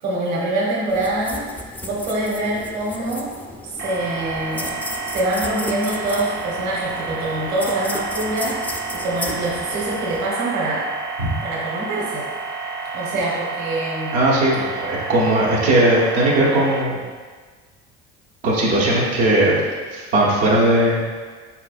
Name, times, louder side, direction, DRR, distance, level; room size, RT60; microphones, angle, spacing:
voice 1, 0.0-1.5 1.8-3.3 3.6-4.8 5.1-10.9 11.4-12.3 12.9-14.2, right 2 dB, 60° right, -4 dB, 1.1 m, -25 dB
sound 1, 0.9-10.3, left 1 dB, 5° left, 0.3 m, -34 dB
sound 2, 3.8-16.8, right 4 dB, 30° right, 0.6 m, -30 dB
voice 2, 14.1-17.0 18.4-19.6 19.9-21.0, right 1 dB, 85° right, -6 dB, 1.3 m, -18 dB
4.4 x 4.2 x 2.5 m, 1.5 s
supercardioid pair, 80°, 33 cm